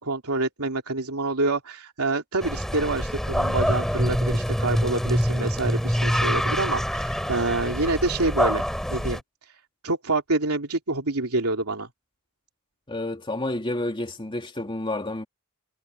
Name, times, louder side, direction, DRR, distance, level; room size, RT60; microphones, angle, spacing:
voice 1, 0.0-9.2 9.8-11.9, right 2 dB, 75° right, 3.2 m, -27 dB
sound 1, 2.4-9.2, equal, ahead, 6.2 m, -25 dB
voice 2, 12.9-15.2, left 1 dB, 25° left, 2.6 m, -30 dB
head